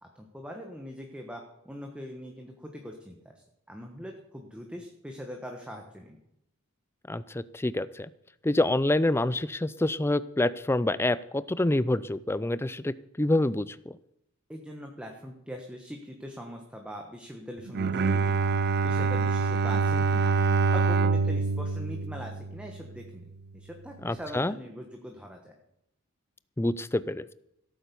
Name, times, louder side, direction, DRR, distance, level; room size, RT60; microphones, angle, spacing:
voice 1, 0.0-6.2 14.5-18.6 18.8-20.3 20.7-25.5, equal, 5° right, 2 dB, 1.3 m, -42 dB
voice 2, 7.1-8.1 8.4-14.0 24.0-24.5 26.6-27.3, left 1 dB, 10° left, 17 dB, 0.4 m, -27 dB
Bowed string instrument, 17.7-23.0, right 4 dB, 50° right, 0.5 m, -26 dB
16.0 x 9.0 x 7.0 m, 0.81 s
head